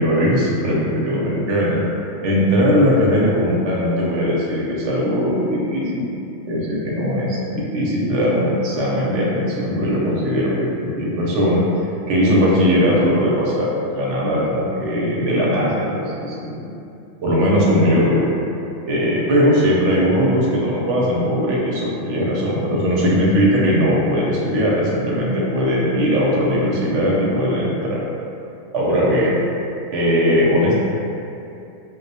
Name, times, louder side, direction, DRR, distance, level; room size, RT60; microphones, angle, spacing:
voice 1, 0.0-1.8 2.2-6.1 6.4-11.7 12.1-13.7 13.9-15.7 16.2-16.7 17.2-18.3 18.8-28.1 28.7-29.4 29.9-30.7, equal, 75° right, -5 dB, 0.9 m, -19 dB
2.3 x 2.1 x 2.6 m, 2.7 s
omnidirectional pair, 1.3 m